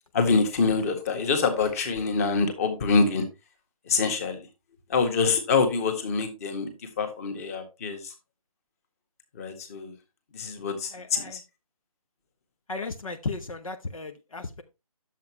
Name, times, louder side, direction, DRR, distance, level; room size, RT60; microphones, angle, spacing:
voice 1, 0.1-3.2 3.9-4.5 4.9-6.7 7.0-8.1 9.4-9.9 10.3-11.4, left 4 dB, 25° left, 1.7 m, -25 dB
voice 2, 10.9-11.4 12.7-14.6, left 3 dB, 65° left, 1.0 m, -35 dB
10.5 x 7.4 x 2.9 m
figure-of-eight pair, 155°, 19 cm